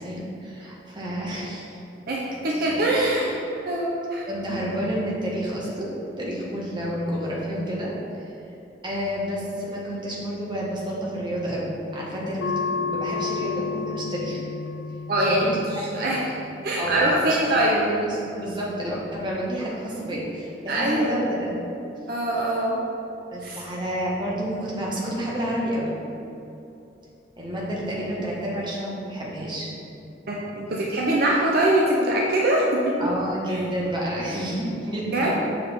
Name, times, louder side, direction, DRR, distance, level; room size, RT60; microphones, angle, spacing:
voice 1, 0.0-1.8 2.5-3.2 4.3-8.3 8.8-14.4 15.3-15.5 15.9-16.1 16.8-17.0 17.5-21.5 23.3-25.9 27.4-29.7 33.0-35.4, equal, 25° right, -5 dB, 1.2 m, -30 dB
voice 2, 2.1-4.3 15.1-16.4 16.6-17.9 20.7-21.2 22.1-22.8 23.4-23.6 30.3-33.0 35.1-35.4, right 1 dB, 60° right, -4 dB, 0.7 m, -23 dB
sound 1, 12.4-17.5, left 5 dB, 80° left, 0.3 m, -32 dB
6.4 x 4.7 x 3.5 m, 2.7 s
head